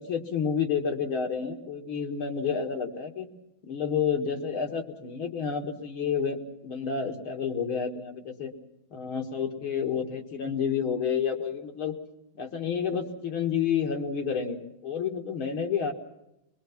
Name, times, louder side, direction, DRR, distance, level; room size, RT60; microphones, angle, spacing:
voice 1, 0.0-3.3 3.6-6.4 6.6-8.5 8.9-11.9 12.4-15.9, left 7 dB, 85° left, 3 dB, 2.8 m, -30 dB
23.5 x 22.0 x 5.9 m, 0.89 s
omnidirectional pair, 2.2 m